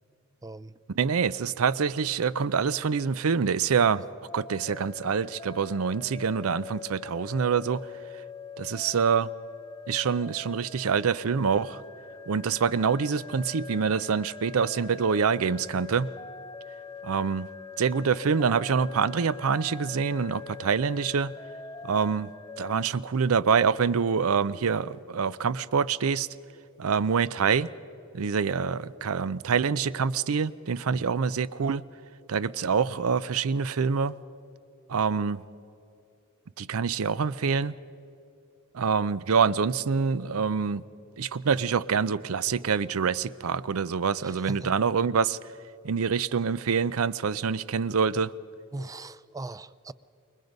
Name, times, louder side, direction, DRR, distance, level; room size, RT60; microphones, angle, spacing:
voice 1, 0.4-0.8 30.9-31.1 44.2-44.7 48.7-49.9, right 2 dB, 15° right, 0.4 m, -39 dB
voice 2, 1.0-4.0 4.3-7.9 8.6-9.3 9.9-11.8 12.3-16.1 17.0-17.5 17.8-21.3 21.8-22.3 22.6-26.3 26.8-27.7 28.1-31.8 32.3-34.2 34.9-35.4 36.6-37.7 38.7-40.8 41.2-45.4 45.8-48.3, right 6 dB, 75° right, 0.5 m, -26 dB
sound 1, 4.3-22.9, left 5 dB, 20° left, 0.8 m, -43 dB
28.5 x 22.5 x 5.3 m
head